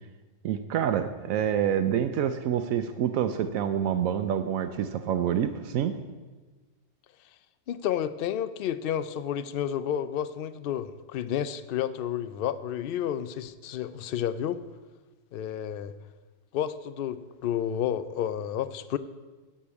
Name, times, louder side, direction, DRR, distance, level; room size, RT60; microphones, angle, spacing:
voice 1, 0.4-6.0, right 9 dB, 80° right, 9 dB, 1.0 m, -27 dB
voice 2, 7.7-14.6 15.3-15.9 16.5-19.0, left 10 dB, 65° left, 14 dB, 0.5 m, -31 dB
10.0 x 5.3 x 8.2 m, 1.3 s
omnidirectional pair, 1.4 m